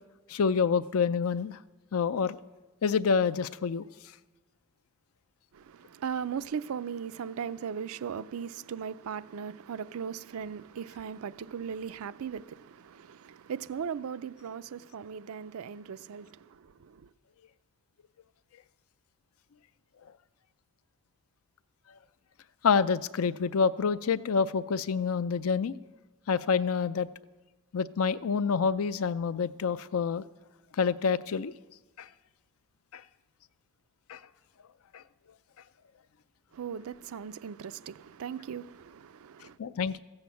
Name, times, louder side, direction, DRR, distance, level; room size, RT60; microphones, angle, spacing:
voice 1, 0.3-1.6 1.9-2.4 2.8-3.8 22.6-25.7 26.3-27.1 27.7-30.2 30.8-31.5 32.0-32.1 32.9-33.0 34.1-34.2 34.9-35.0 39.6-40.0, left 6 dB, 85° left, 0.5 m, -27 dB
voice 2, 5.5-17.1 36.5-39.6, right 7 dB, 85° right, 0.4 m, -38 dB
14.5 x 7.9 x 7.0 m
head